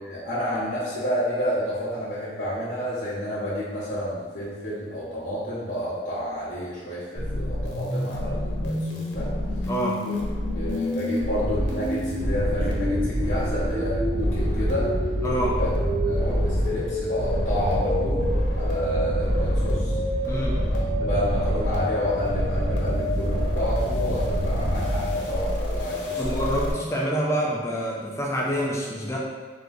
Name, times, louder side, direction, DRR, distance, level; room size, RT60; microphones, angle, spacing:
voice 1, 0.0-9.3 10.0-10.1 10.5-14.9 15.6-15.7 16.0-18.2 18.5-20.0 20.7-26.4, equal, 45° left, -11 dB, 0.9 m, -30 dB
sound 1, 7.2-26.7, left 1 dB, 75° left, 0.9 m, -29 dB
voice 2, 9.7-10.0 15.2-15.6 20.3-20.6 26.2-29.2, equal, 15° left, -3 dB, 0.4 m, -27 dB
sound 2, 11.4-25.7, equal, 45° right, 0.6 m, -27 dB
3.3 x 3.0 x 3.9 m, 1.5 s
head